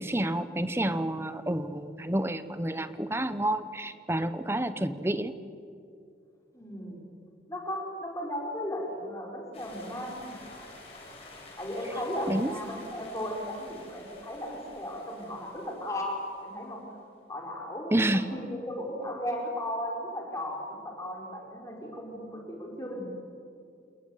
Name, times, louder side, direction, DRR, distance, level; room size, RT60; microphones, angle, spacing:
voice 1, 0.0-5.3 12.3-12.5 17.9-18.4, right 1 dB, 15° right, 12 dB, 0.9 m, -29 dB
voice 2, 4.5-4.8 6.5-7.1 7.5-10.4 11.6-16.8 17.3-23.1, left 1 dB, 15° left, -1 dB, 5.2 m, -36 dB
sound 1, 9.5-16.8, left 2 dB, 35° left, 7.6 m, -50 dB
28.0 x 21.5 x 9.4 m, 2.5 s
head